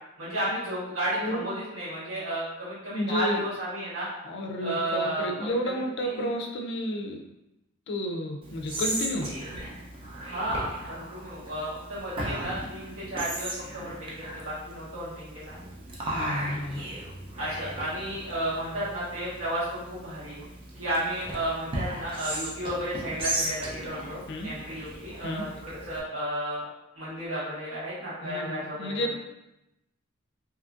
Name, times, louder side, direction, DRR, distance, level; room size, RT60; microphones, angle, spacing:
voice 1, 0.2-4.1 4.6-6.3 10.2-15.7 17.4-20.4 20.8-26.6 26.9-29.2, right 1 dB, 85° right, -11 dB, 1.2 m, -33 dB
voice 2, 2.9-3.4 4.2-7.3 7.9-9.3 16.0-16.9 24.3-24.5 25.2-25.4 28.2-29.2, equal, 55° left, 2 dB, 0.4 m, -31 dB
Whispering, 8.4-26.0, right 1 dB, 25° right, 0.5 m, -37 dB
2.7 x 2.5 x 2.3 m, 0.90 s
head